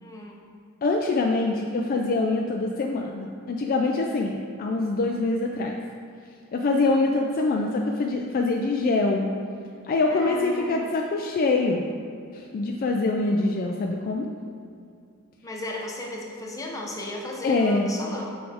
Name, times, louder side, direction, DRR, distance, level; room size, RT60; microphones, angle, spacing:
voice 1, 0.0-0.4 10.1-10.9 15.4-18.4, left 1 dB, 15° left, -2 dB, 0.7 m, -35 dB
voice 2, 0.8-5.8 6.5-9.3 9.8-11.8 12.3-14.3 17.4-17.9, left 3 dB, 40° left, 1 dB, 0.3 m, -24 dB
6.1 x 4.8 x 3.4 m, 2.4 s
head